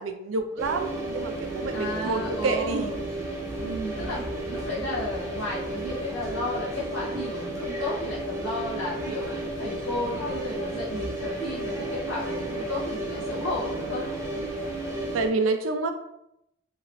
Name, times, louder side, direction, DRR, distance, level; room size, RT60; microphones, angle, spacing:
voice 1, 0.0-2.9 15.1-15.9, right 3 dB, 90° right, 7 dB, 0.4 m, -28 dB
sound 1, 0.6-15.3, right 1 dB, 15° right, 0.7 m, -33 dB
voice 2, 1.7-3.0 3.6-14.1, left 1 dB, 80° left, -9 dB, 1.0 m, -33 dB
2.9 x 2.7 x 3.0 m, 0.82 s
head